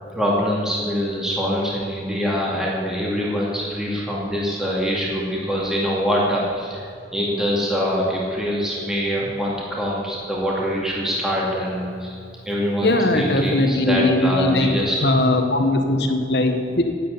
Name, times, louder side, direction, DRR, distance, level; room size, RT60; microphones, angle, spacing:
voice 1, 0.0-6.8 7.1-12.2 12.5-15.0, equal, 5° right, -4 dB, 2.3 m, -24 dB
voice 2, 12.8-14.7 15.0-16.8, left 1 dB, 65° left, 5 dB, 1.6 m, -19 dB
11.0 x 9.2 x 9.6 m, 2.5 s
head